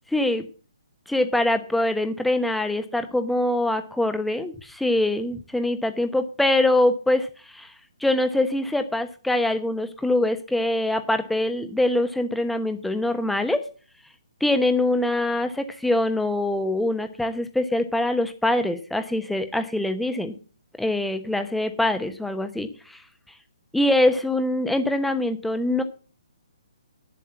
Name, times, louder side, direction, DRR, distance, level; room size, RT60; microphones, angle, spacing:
voice 1, 0.1-0.5 1.1-7.7 8.0-13.6 14.4-20.4 20.8-23.0 23.7-25.8, left 1 dB, ahead, 8 dB, 1.0 m, -24 dB
9.0 x 7.7 x 7.1 m, 0.38 s
hypercardioid pair, 140°, 3 cm